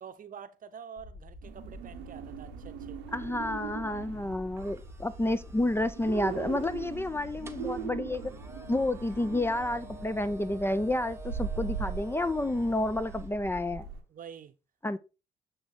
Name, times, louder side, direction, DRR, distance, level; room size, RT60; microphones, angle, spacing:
voice 1, 0.0-3.0 14.1-14.5, right 7 dB, 50° right, 0.8 m, -47 dB
sound 1, 1.0-13.9, left 2 dB, 65° left, 2.1 m, -47 dB
sound 2, 1.4-14.0, right 8 dB, 85° right, 0.8 m, -41 dB
voice 2, 3.1-8.3 8.7-13.9 14.8-15.0, left 1 dB, 15° left, 0.5 m, -30 dB
sound 3, 4.6-13.3, right 2 dB, 15° right, 0.9 m, -51 dB
7.9 x 3.1 x 4.2 m
hypercardioid pair, 50°, 18 cm